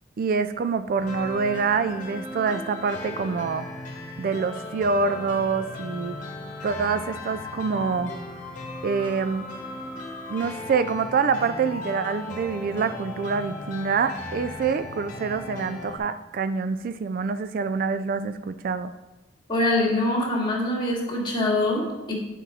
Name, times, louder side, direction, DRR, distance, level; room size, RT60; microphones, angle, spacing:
voice 1, 0.2-3.7 4.2-6.2 6.6-8.1 8.8-9.5 10.3-18.9, right 5 dB, 50° right, 11 dB, 0.3 m, -26 dB
sound 1, 1.0-16.0, left 2 dB, 45° left, 1.3 m, -37 dB
voice 2, 19.5-22.1, left 1 dB, 25° left, -1 dB, 2.1 m, -24 dB
9.7 x 5.4 x 4.2 m, 1.1 s
head